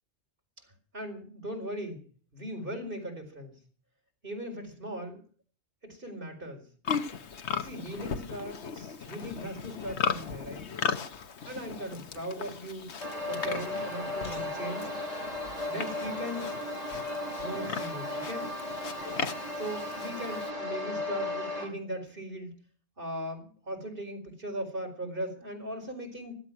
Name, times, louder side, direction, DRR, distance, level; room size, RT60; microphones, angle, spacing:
voice 1, 0.9-2.0 2.3-3.5 4.2-5.2 5.8-6.7 7.6-10.7 11.5-12.9 13.2-14.9 15.7-16.6 17.4-18.5 19.6-22.6 23.0-26.3, equal, 55° right, 3 dB, 4.8 m, -38 dB
Livestock farm animals working animals, 6.8-20.5, left 6 dB, 80° left, 1.4 m, -37 dB
sound 1, 13.0-21.6, left 2 dB, 35° left, 4.9 m, -35 dB
16.0 x 12.5 x 6.2 m, 0.42 s
omnidirectional pair, 1.1 m